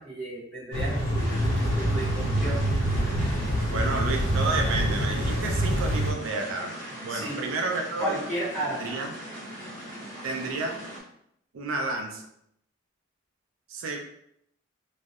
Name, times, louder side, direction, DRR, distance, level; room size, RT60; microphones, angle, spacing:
voice 1, 0.0-1.3 1.7-2.6 7.1-7.4 8.0-9.0, right 1 dB, 5° left, -8 dB, 0.6 m, -33 dB
sound 1, 0.7-6.1, equal, 85° left, 0.6 m, -26 dB
sound 2, 1.1-11.0, equal, 40° left, 0.8 m, -40 dB
voice 2, 3.7-8.2 8.8-9.1 10.2-10.7 11.5-12.3 13.7-14.0, right 3 dB, 75° right, 2 dB, 0.4 m, -31 dB
2.6 x 2.0 x 2.3 m, 0.74 s
head